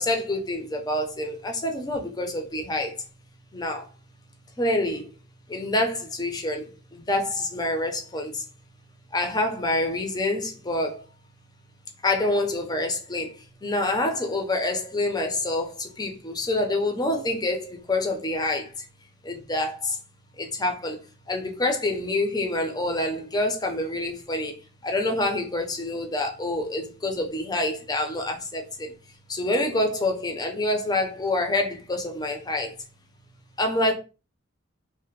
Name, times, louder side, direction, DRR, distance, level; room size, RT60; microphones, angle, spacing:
voice 1, 0.0-3.0 3.5-3.9 4.6-5.1 5.5-8.4 9.1-11.0 12.0-18.8 19.2-20.0 20.4-21.0 21.3-24.6 24.8-28.9 29.3-32.7 33.6-33.9, left 2 dB, 20° left, 0.6 m, -27 dB
3.2 x 2.1 x 3.1 m
head